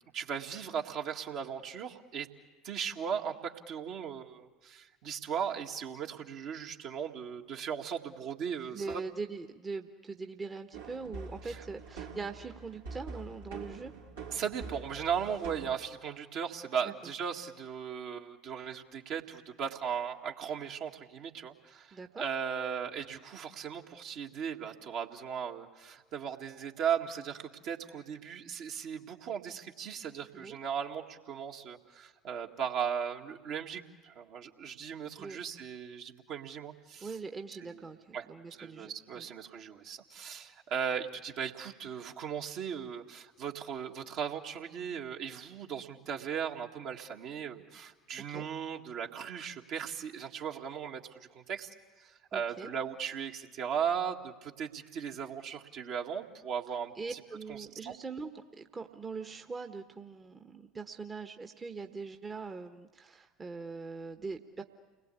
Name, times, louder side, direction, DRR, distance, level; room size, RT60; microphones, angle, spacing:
voice 1, 0.0-2.3 2.6-9.0 11.4-11.6 14.3-37.1 37.6-37.8 38.1-38.3 38.6-51.7 52.0-57.2 57.5-58.0, right 7 dB, 50° right, 1 dB, 1.9 m, -37 dB
voice 2, 8.7-13.9 16.8-16.9 21.9-22.2 30.3-30.6 35.2-35.4 37.0-39.3 48.3-48.5 52.3-52.7 57.0-64.6, right 4 dB, 25° right, 5 dB, 1.3 m, -42 dB
sound 1, 10.7-15.7, right 4 dB, 75° right, 3.0 m, -45 dB
29.5 x 21.0 x 8.5 m, 1.3 s
figure-of-eight pair, 70°, 0 cm